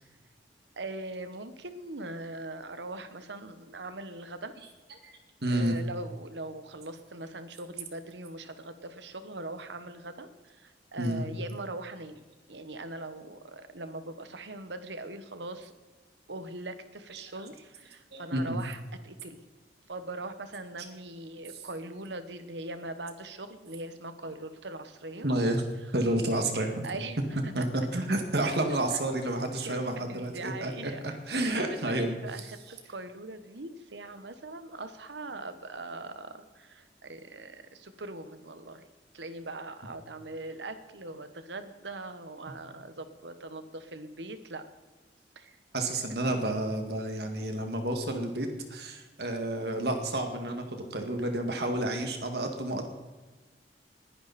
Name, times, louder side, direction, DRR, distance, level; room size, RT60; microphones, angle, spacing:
voice 1, 0.8-4.5 5.5-12.2 12.5-15.7 16.3-19.4 19.9-25.3 25.8-25.9 26.8-27.7 28.4-29.0 29.6-31.0 31.7-38.9 39.1-44.7 45.3-45.9, right 2 dB, 85° right, 10 dB, 1.3 m, -41 dB
voice 2, 5.0-5.8 11.0-11.2 18.1-18.6 25.2-25.6 25.9-26.8 27.6-30.9 31.3-32.1 45.7-52.8, right 1 dB, 65° right, 4 dB, 2.2 m, -30 dB
20.5 x 10.5 x 4.3 m, 1.3 s
head